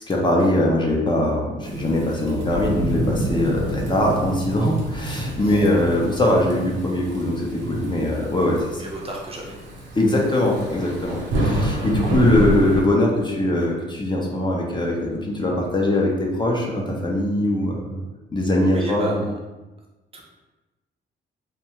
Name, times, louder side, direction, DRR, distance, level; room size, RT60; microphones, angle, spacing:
voice 1, 0.1-8.8 9.9-18.0 18.3-19.2, left 1 dB, 25° left, -2 dB, 0.6 m, -21 dB
Thunderstorm / Rain, 1.6-12.8, right 1 dB, 65° right, 0.7 m, -28 dB
voice 2, 8.8-9.6 18.7-19.3 20.1-20.2, right 1 dB, 30° right, -1 dB, 0.5 m, -33 dB
2.6 x 2.2 x 3.0 m, 1.1 s
cardioid pair, 90°, 20 cm